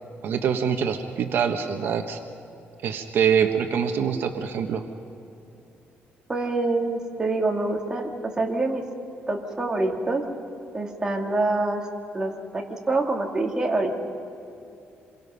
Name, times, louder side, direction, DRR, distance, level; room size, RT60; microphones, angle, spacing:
voice 1, 0.2-2.2 2.8-4.8, right 7 dB, 60° right, 5 dB, 1.3 m, -24 dB
voice 2, 6.3-8.8 9.3-10.2 10.7-11.9 12.1-13.9, right 2 dB, 15° right, 1 dB, 2.2 m, -26 dB
27.5 x 23.0 x 5.7 m, 2.7 s
cardioid pair, 160°, 4 cm